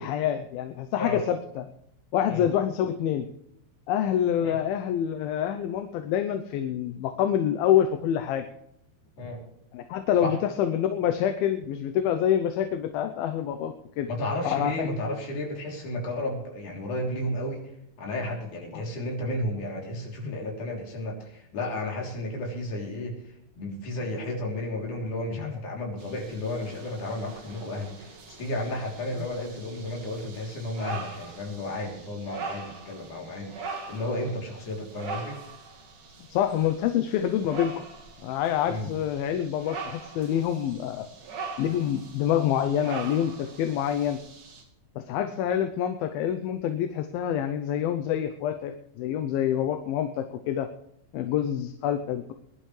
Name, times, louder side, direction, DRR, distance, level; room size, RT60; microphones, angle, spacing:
voice 1, 0.0-1.7 2.1-3.3 3.9-8.4 9.7-14.1 14.4-14.9 18.7-18.8 20.2-20.3 25.4-25.6 36.3-37.8 38.2-41.1 41.6-44.2 45.0-50.7 51.1-52.3, left 10 dB, 80° left, 8 dB, 2.6 m, -27 dB
voice 2, 14.1-17.7 18.0-35.4 38.7-38.9, left 1 dB, 55° left, -1 dB, 4.6 m, -33 dB
sound 1, 26.0-44.6, right 4 dB, 60° right, 3.6 m, -42 dB
22.5 x 11.5 x 3.3 m, 0.76 s
omnidirectional pair, 4.3 m